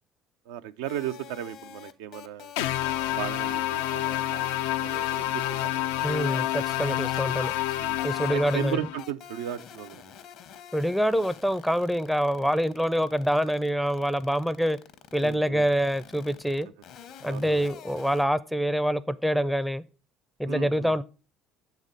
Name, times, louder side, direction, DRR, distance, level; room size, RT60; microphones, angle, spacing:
voice 1, 0.5-2.5 3.1-4.5 4.8-6.2 7.8-8.0 8.3-10.1 15.2-15.6 17.2-17.6 20.5-20.9, right 11 dB, 85° right, 0.4 m, -36 dB
sound 1, 0.9-4.6 4.9-5.2 5.4-5.7 6.0-8.7 9.0-18.2, left 8 dB, 65° left, 0.8 m, -46 dB
sound 2, 2.6-9.0, left 14 dB, 85° left, 0.3 m, -28 dB
voice 2, 6.0-7.5 8.0-8.8 10.7-14.8 15.1-16.7 17.2-19.8 20.4-21.0, equal, ahead, 0.4 m, -26 dB
7.2 x 4.1 x 5.0 m
hypercardioid pair, 70°, 0 cm